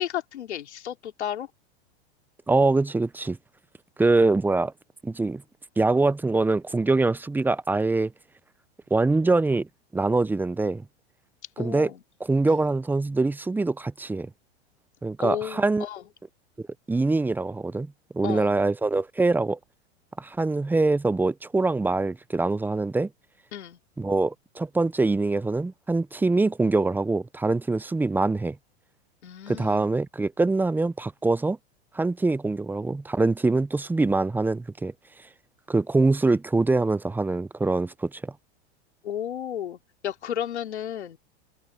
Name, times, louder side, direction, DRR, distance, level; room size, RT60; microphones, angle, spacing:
voice 1, 0.0-1.5 11.6-12.0 12.5-12.6 15.2-16.0 18.2-18.5 23.5-23.8 29.2-29.9 39.0-41.2, left 10 dB, 90° left, 3.0 m, -33 dB
voice 2, 2.5-3.4 4.0-4.7 5.0-5.4 5.8-8.1 8.9-9.7 9.9-10.8 11.6-11.9 12.2-14.3 15.0-15.9 16.9-17.9 18.1-19.6 20.2-23.1 24.0-28.6 29.5-31.6 31.9-34.9 35.7-38.3, right 3 dB, 5° right, 0.6 m, -24 dB
hypercardioid pair, 120°, 33 cm